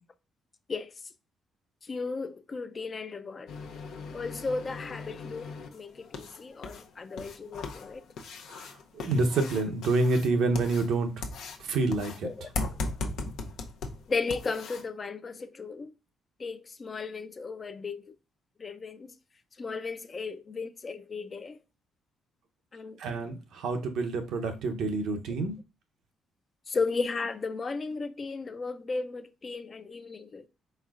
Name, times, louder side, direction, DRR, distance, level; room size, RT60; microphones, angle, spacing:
voice 1, 1.8-3.5 4.1-8.0 12.2-12.5 14.1-15.9 16.4-18.1 18.6-19.2 19.6-21.6 22.7-23.0 26.7-30.5, left 4 dB, 35° left, 0.4 m, -35 dB
sound 1, 3.5-14.8, left 3 dB, 80° left, 0.6 m, -39 dB
voice 2, 8.5-11.2 11.6-12.3 23.0-25.5, right 3 dB, 80° right, 0.7 m, -28 dB
4.3 x 4.2 x 2.4 m
cardioid pair, 90°, 0 cm